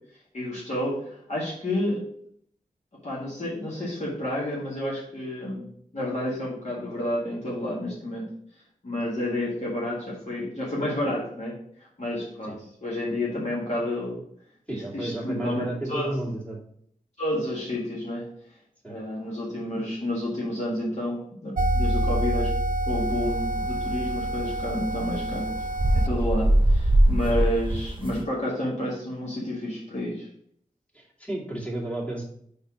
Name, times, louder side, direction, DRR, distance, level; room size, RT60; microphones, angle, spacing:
voice 1, 0.3-2.0 3.0-8.3 8.8-12.5 12.8-14.2 14.7-16.1 17.2-18.3 18.9-22.5 22.8-25.6 25.9-30.3, left 1 dB, 55° left, -6 dB, 1.8 m, -30 dB
voice 2, 14.7-16.6 18.8-19.0 27.2-27.4 30.9-32.2, right 1 dB, 10° left, -3 dB, 2.3 m, -32 dB
sound 1, 21.6-26.1, right 1 dB, 65° right, 0.7 m, -27 dB
sound 2, 22.9-28.2, right 1 dB, 35° right, 1.0 m, -23 dB
5.2 x 4.1 x 5.0 m, 0.65 s
wide cardioid pair, 80°, 14 cm